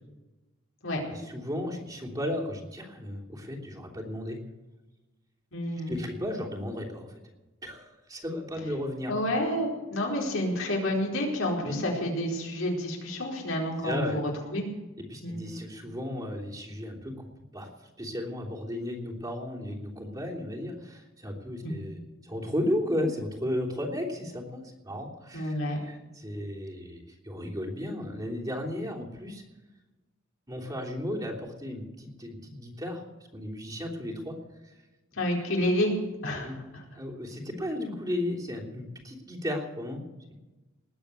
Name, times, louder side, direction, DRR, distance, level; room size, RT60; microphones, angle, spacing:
voice 1, 1.1-4.4 5.9-7.2 7.6-9.1 11.6-11.7 13.8-14.2 15.1-17.3 17.5-17.7 18.0-29.4 30.5-33.0 33.3-34.4 34.6-34.7 36.4-36.6 36.9-40.0, left 1 dB, 20° right, -2 dB, 3.2 m, -34 dB
voice 2, 5.5-5.9 9.1-14.2 14.5-14.6 15.2-15.4 21.6-21.7 25.3-25.8 35.1-35.9 36.2-36.5, left 1 dB, 75° left, -1 dB, 4.7 m, -29 dB
20.0 x 8.5 x 8.3 m, 1.1 s
head